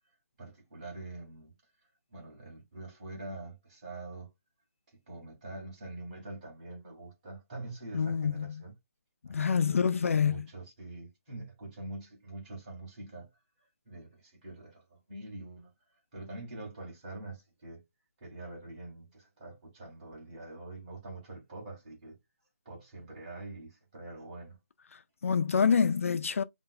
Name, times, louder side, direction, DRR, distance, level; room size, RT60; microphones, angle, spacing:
voice 1, 0.4-1.5 2.1-4.3 5.1-8.7 9.2-9.8 10.1-13.3 13.8-15.7 16.1-17.8 18.2-22.2 22.6-24.6, right 2 dB, 30° right, 2.7 m, -45 dB
voice 2, 7.9-8.5 9.3-10.5 24.9-26.4, left 6 dB, 65° left, 0.4 m, -27 dB
5.5 x 2.5 x 2.3 m
hypercardioid pair, 170°, 8 cm